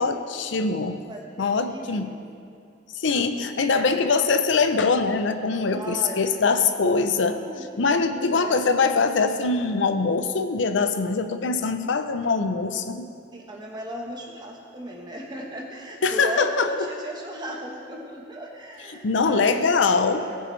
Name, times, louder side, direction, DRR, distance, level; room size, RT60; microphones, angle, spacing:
voice 1, 0.0-1.0 1.4-2.1 2.9-7.4 7.8-13.1 16.0-16.7 18.9-20.2, left 4 dB, 75° left, 8 dB, 0.6 m, -23 dB
voice 2, 1.1-2.1 3.7-4.0 5.7-6.7 7.2-7.6 8.1-8.6 13.3-19.8 20.1-20.4, equal, 25° right, 0 dB, 1.3 m, -36 dB
18.5 x 7.0 x 3.3 m, 2.3 s
head